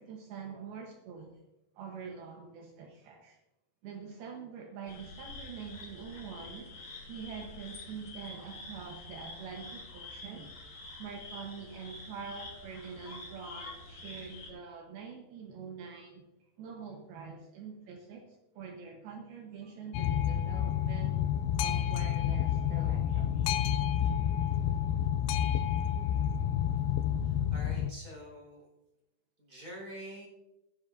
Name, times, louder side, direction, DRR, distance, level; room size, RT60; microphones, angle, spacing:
voice 1, 0.0-1.4 1.8-3.4 3.8-10.5 11.0-16.2 16.6-21.2 21.6-23.5, right 6 dB, 75° right, 1 dB, 2.9 m, -45 dB
sound 1, 4.9-14.5, left 2 dB, 55° left, 4.7 m, -47 dB
Boat Water vehicle, 19.9-27.9, left 10 dB, 85° left, 2.1 m, -29 dB
voice 2, 27.2-28.6 29.4-30.3, equal, 20° right, -2 dB, 4.7 m, -46 dB
17.5 x 10.5 x 2.6 m, 0.93 s
omnidirectional pair, 4.7 m